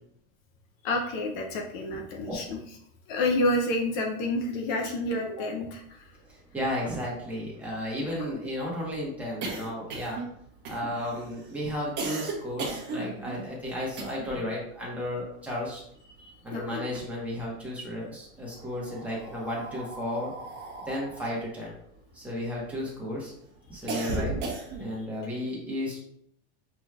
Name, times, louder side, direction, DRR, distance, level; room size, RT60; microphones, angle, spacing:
voice 1, 0.8-2.6 3.1-6.1 8.0-8.1 16.2-16.9 23.9-24.4, left 1 dB, 50° left, 2 dB, 0.7 m, -30 dB
voice 2, 6.3-10.2 10.7-15.8 16.4-20.3 20.8-21.7 22.1-23.3 23.7-24.4 24.8-26.0, left 1 dB, 5° right, -6 dB, 1.2 m, -33 dB
sound 1, 6.3-6.4 6.6-6.7 7.0-14.5 14.8-16.4 16.7-17.6 18.4-22.9 23.3-25.0, right 3 dB, 35° right, 1.0 m, -37 dB
6.1 x 3.1 x 2.4 m, 0.70 s
supercardioid pair, 160°, 34 cm